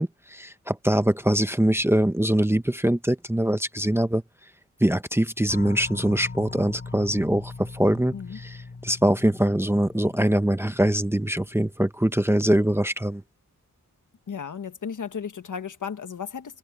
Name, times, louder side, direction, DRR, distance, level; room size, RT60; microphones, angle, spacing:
voice 1, 0.0-4.2 4.8-8.1 8.8-13.2, right 1 dB, 10° right, 0.8 m, -23 dB
sound 1, 5.5-11.8, left 3 dB, 40° left, 2.7 m, -41 dB
voice 2, 14.3-16.6, left 7 dB, 70° left, 1.5 m, -34 dB
wide cardioid pair, 135°, 32 cm